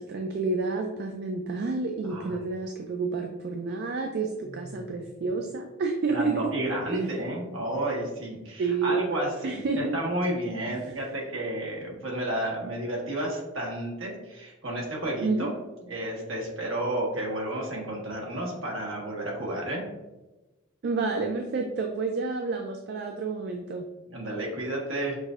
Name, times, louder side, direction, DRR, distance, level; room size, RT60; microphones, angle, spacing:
voice 1, 0.0-6.4 6.9-7.1 8.6-9.0 9.4-10.0 10.8-10.9 15.2-15.5 20.8-23.8, right 4 dB, 50° right, 3 dB, 0.3 m, -29 dB
voice 2, 2.0-2.4 4.4-4.9 6.1-15.5 15.9-19.8 24.1-25.2, right 1 dB, 65° right, -3 dB, 1.3 m, -31 dB
5.9 x 2.6 x 2.4 m, 1.1 s
head